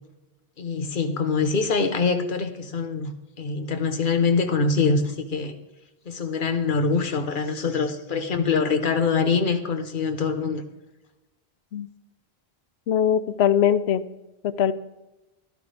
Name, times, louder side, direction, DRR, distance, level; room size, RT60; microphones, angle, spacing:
voice 1, 0.6-5.5 6.1-10.6, left 4 dB, 55° left, 7 dB, 1.2 m, -24 dB
voice 2, 12.9-14.0 14.6-14.7, left 9 dB, 85° left, 15 dB, 0.9 m, -21 dB
12.5 x 12.0 x 3.4 m, 1.0 s
omnidirectional pair, 1.0 m